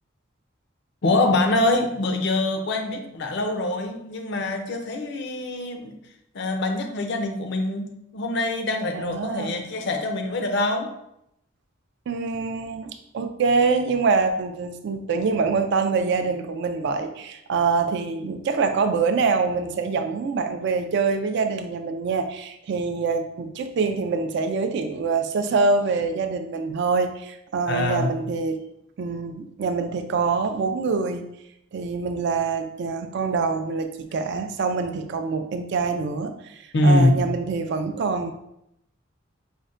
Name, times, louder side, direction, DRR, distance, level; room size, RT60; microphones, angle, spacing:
voice 1, 1.0-6.0 6.3-10.9 27.7-28.1 36.7-37.2, left 2 dB, 55° left, 5 dB, 0.5 m, -24 dB
voice 2, 8.9-9.7 12.1-28.6 29.0-31.3 31.7-38.3, right 4 dB, 55° right, 7 dB, 0.3 m, -25 dB
5.2 x 2.1 x 2.4 m, 0.79 s
head